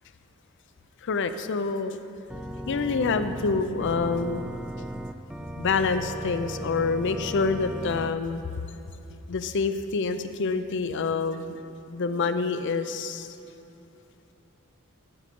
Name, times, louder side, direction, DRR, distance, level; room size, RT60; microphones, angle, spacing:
voice 1, 1.0-2.0 2.7-4.5 5.6-8.4 9.3-11.6 11.9-13.4, left 4 dB, 60° left, 10 dB, 0.5 m, -27 dB
Organ, 2.3-8.1, right 1 dB, 5° right, 0.3 m, -36 dB
11.5 x 5.1 x 6.8 m, 2.9 s
head